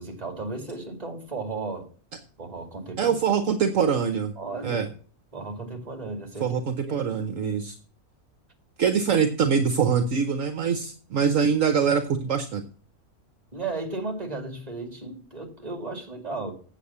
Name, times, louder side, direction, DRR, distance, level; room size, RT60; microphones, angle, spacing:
voice 1, 0.0-1.9 2.4-3.1 4.4-4.9 5.3-6.5 6.9-7.1 13.5-16.5, right 3 dB, 25° right, 2.3 m, -34 dB
voice 2, 3.0-4.3 4.6-4.9 6.4-7.8 8.8-12.6, right 6 dB, 65° right, 1.2 m, -24 dB
8.2 x 8.0 x 7.0 m
omnidirectional pair, 1.5 m